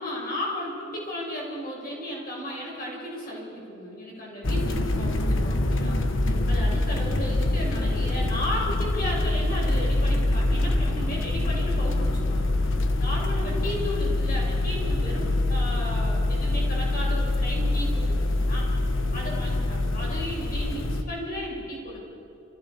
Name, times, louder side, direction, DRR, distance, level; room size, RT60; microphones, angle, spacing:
voice 1, 0.0-6.0 6.5-12.5 13.0-18.7 19.1-22.0, left 1 dB, 50° left, -4 dB, 7.2 m, -34 dB
sound 1, 4.4-21.0, left 2 dB, 70° left, 1.3 m, -25 dB
29.5 x 15.5 x 6.9 m, 2.8 s
head